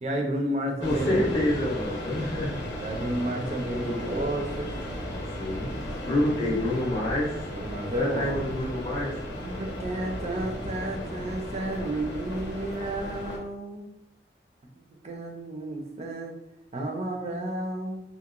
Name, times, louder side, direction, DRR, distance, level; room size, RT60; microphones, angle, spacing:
voice 1, 0.0-1.3 2.8-4.7 7.5-8.4 9.4-13.9 15.0-16.4 16.7-18.0, right 1 dB, 35° right, 1 dB, 0.4 m, -32 dB
sound 1, 0.8-13.4, equal, 80° left, 0.6 m, -35 dB
voice 2, 0.8-2.5 3.6-4.4 5.4-5.7 6.1-7.3 8.0-9.1, left 1 dB, 30° left, -6 dB, 0.5 m, -28 dB
2.8 x 2.0 x 2.4 m, 0.85 s
head